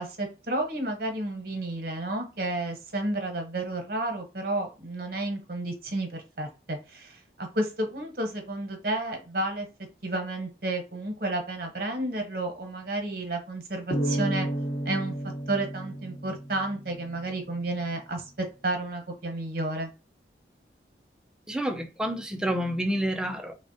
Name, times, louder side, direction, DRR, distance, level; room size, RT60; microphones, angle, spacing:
voice 1, 0.0-9.7 10.0-14.5 14.8-15.1 15.5-18.3 18.6-19.9, right 2 dB, 55° right, 0.8 m, -31 dB
sound 1, 13.9-17.3, right 1 dB, 60° left, 0.8 m, -32 dB
voice 2, 21.5-23.5, equal, 5° right, 0.3 m, -29 dB
3.4 x 2.1 x 2.5 m
head